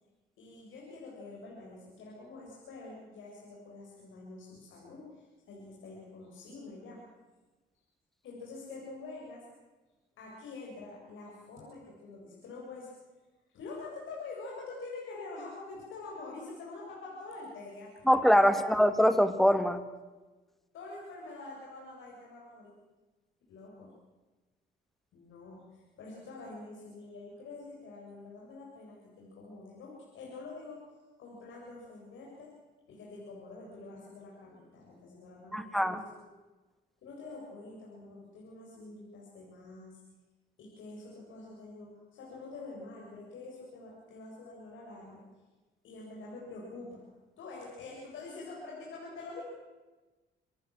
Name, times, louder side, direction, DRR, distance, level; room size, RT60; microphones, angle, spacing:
voice 1, 0.4-7.0 8.2-9.4 10.2-12.9 13.5-18.0 18.5-18.6 20.7-22.8 23.5-23.9 25.1-32.5 32.9-36.0 37.0-40.0 40.6-45.2 45.8-47.0 47.4-49.4, left 3 dB, 80° left, -3 dB, 7.6 m, -46 dB
voice 2, 18.1-19.8 35.5-36.0, equal, ahead, 10 dB, 2.2 m, -23 dB
27.0 x 18.5 x 7.8 m, 1.2 s
cardioid pair, 90°, 20 cm